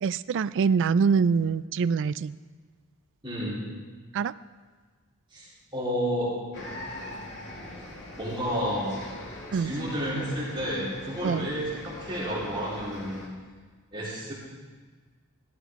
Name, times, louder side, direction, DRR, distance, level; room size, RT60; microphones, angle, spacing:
voice 1, 0.0-2.3 4.1-4.3 9.5-9.7 11.2-11.5, right 5 dB, 55° right, 16 dB, 0.4 m, -24 dB
voice 2, 3.2-3.7 5.3-5.5 5.7-6.3 8.2-9.0 9.5-13.3 13.9-14.3, equal, 25° right, -8 dB, 3.8 m, -31 dB
sound 1, 6.5-13.3, left 1 dB, 55° left, 2.2 m, -42 dB
15.5 x 13.0 x 3.6 m, 1.5 s
head